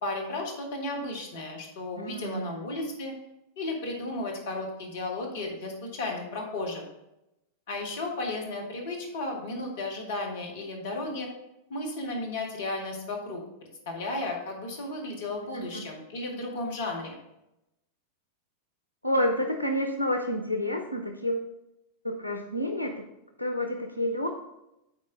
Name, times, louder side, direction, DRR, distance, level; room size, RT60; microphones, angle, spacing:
voice 1, 0.0-3.1 3.6-6.8 7.7-11.3 11.7-17.2, left 2 dB, 60° left, 1 dB, 1.8 m, -34 dB
voice 2, 2.0-2.6 15.5-15.8 19.0-21.5 22.0-23.0 23.4-24.3, left 1 dB, 90° right, 4 dB, 0.7 m, -29 dB
8.2 x 4.3 x 4.9 m, 0.88 s
figure-of-eight pair, 90°, 0 cm